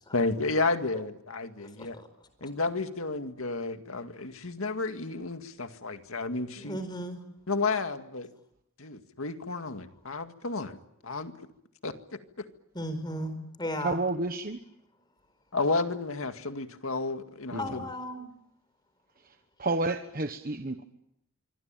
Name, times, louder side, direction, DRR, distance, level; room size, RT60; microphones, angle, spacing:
voice 1, 0.1-2.0 2.4-6.8 7.5-8.3 8.8-11.3 11.8-12.5 15.5-17.8, left 3 dB, 80° left, 8 dB, 2.1 m, -32 dB
voice 2, 1.6-2.3 6.6-7.2 12.7-14.0 17.6-18.3, left 1 dB, 20° left, 10 dB, 4.5 m, -36 dB
voice 3, 13.8-14.6 17.5-17.7 19.2-20.8, right 2 dB, 45° right, 7 dB, 1.2 m, -31 dB
25.5 x 25.0 x 9.0 m, 0.79 s
head